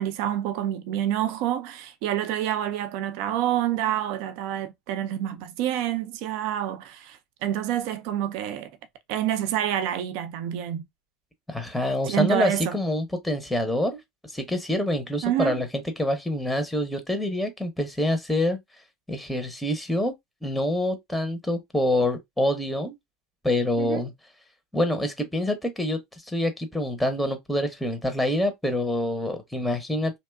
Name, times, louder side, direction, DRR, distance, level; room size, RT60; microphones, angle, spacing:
voice 1, 0.0-8.7 9.1-10.8 12.1-12.8 15.2-15.6 23.8-24.1, right 11 dB, 65° right, 0.4 m, -28 dB
voice 2, 11.5-18.6 19.1-20.1 20.4-23.0 23.4-24.1 24.7-26.0 26.3-30.2, left 1 dB, ahead, 0.7 m, -26 dB
2.6 x 2.1 x 2.3 m
hypercardioid pair, 85°, 0 cm